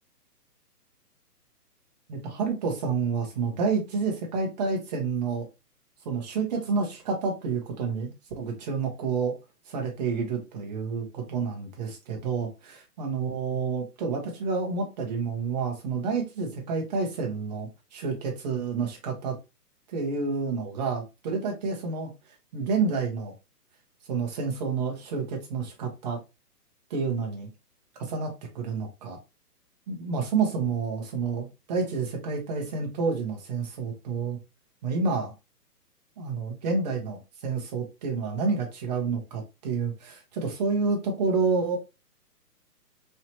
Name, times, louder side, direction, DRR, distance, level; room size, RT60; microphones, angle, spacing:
voice 1, 2.1-5.5 6.0-9.3 9.7-19.3 19.9-22.1 22.5-23.3 24.1-26.2 26.9-27.5 28.0-29.2 29.9-34.4 34.8-35.3 36.2-41.8, right 4 dB, 25° right, 0.9 m, -29 dB
3.3 x 2.7 x 2.8 m
hypercardioid pair, 145°, 47 cm